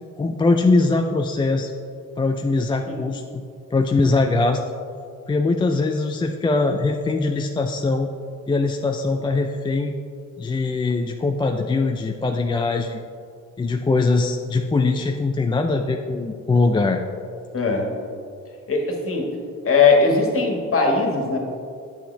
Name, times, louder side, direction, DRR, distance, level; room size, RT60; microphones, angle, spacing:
voice 1, 0.2-1.7 2.2-3.4 3.7-4.6 5.3-8.1 8.5-10.0 10.4-13.0 13.6-17.0, left 3 dB, 15° left, 4 dB, 0.4 m, -21 dB
voice 2, 17.5-17.9 18.7-19.3 19.6-21.4, left 4 dB, 45° left, 0 dB, 1.7 m, -19 dB
8.8 x 7.2 x 3.3 m, 2.3 s
cardioid pair, 90°, 30 cm